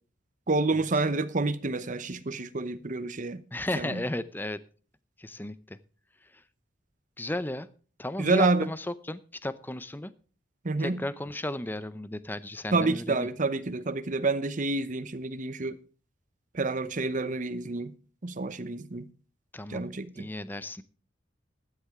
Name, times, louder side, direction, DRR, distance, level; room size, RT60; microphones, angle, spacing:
voice 1, 0.5-3.4 3.8-4.0 8.2-8.7 10.6-11.0 12.7-15.8 16.5-17.9 18.2-19.1 19.7-20.3, right 3 dB, 40° right, 0.9 m, -28 dB
voice 2, 3.5-4.6 5.2-5.8 7.2-7.7 8.0-10.1 10.8-13.3 19.5-19.8 20.2-20.8, left 1 dB, 10° left, 0.6 m, -34 dB
15.0 x 9.9 x 3.6 m
head